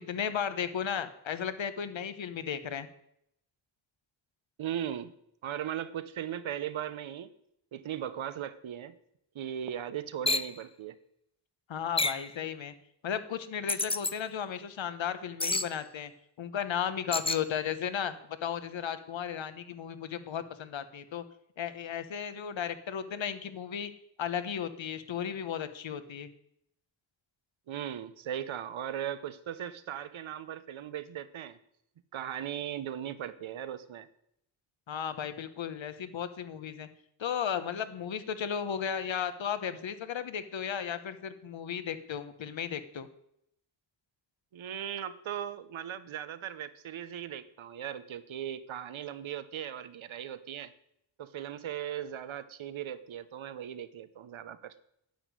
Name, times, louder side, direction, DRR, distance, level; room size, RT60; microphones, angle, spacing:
voice 1, 0.0-2.9 11.7-12.7 13.0-16.1 16.4-21.2 21.6-23.9 24.2-26.3 34.9-36.9 37.2-43.1, left 8 dB, 75° left, 11 dB, 1.3 m, -35 dB
voice 2, 4.6-5.1 5.4-7.3 7.7-9.0 9.3-11.0 27.7-31.6 32.1-34.1 44.5-50.7 51.2-54.7, right 10 dB, 90° right, 14 dB, 1.0 m, -38 dB
Beep sequence sci fi interface, 10.3-10.5 12.0-12.3 13.7-14.1 15.4-15.7 17.1-17.4, left 2 dB, 15° left, 0.5 m, -29 dB
10.0 x 8.3 x 9.3 m, 0.75 s
wide cardioid pair, 125°, 46 cm